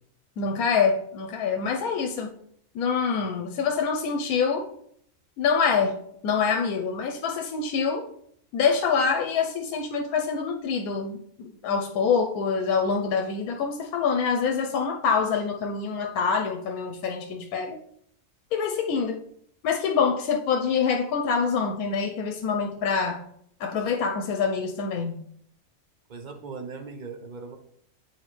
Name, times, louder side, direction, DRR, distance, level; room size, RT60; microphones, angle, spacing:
voice 1, 0.4-2.3 2.7-4.7 5.4-6.0 6.2-8.0 8.5-17.8 18.5-19.2 19.6-23.2 23.6-25.2, left 5 dB, 90° left, 3 dB, 1.1 m, -25 dB
voice 2, 26.1-27.6, right 4 dB, 55° right, 5 dB, 0.5 m, -39 dB
7.9 x 4.3 x 3.2 m, 0.68 s
omnidirectional pair, 1.5 m